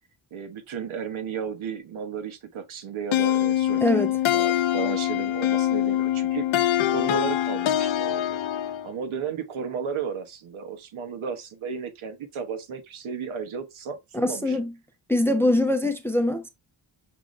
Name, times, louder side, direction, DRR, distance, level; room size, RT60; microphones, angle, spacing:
voice 1, 0.3-8.4 8.8-14.6, right 6 dB, 85° right, 1.1 m, -34 dB
sound 1, 3.1-8.9, left 12 dB, 75° left, 0.6 m, -24 dB
voice 2, 3.8-4.1 14.1-14.7 15.1-16.5, left 1 dB, 5° left, 0.5 m, -23 dB
5.8 x 2.5 x 3.0 m
wide cardioid pair, 150°, 47 cm